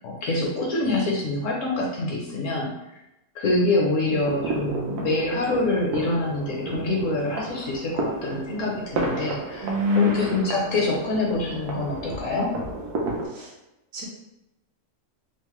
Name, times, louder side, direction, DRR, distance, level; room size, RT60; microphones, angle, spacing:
voice 1, 0.0-3.0 3.3-9.7 9.9-12.6, left 2 dB, 65° left, -2 dB, 0.9 m, -26 dB
sound 1, 4.1-13.3, right 2 dB, 90° right, 1.2 m, -32 dB
voice 2, 9.6-10.6 13.3-13.5 13.9-14.0, left 4 dB, 65° right, -3 dB, 1.1 m, -24 dB
3.1 x 2.0 x 3.0 m, 0.92 s
omnidirectional pair, 1.6 m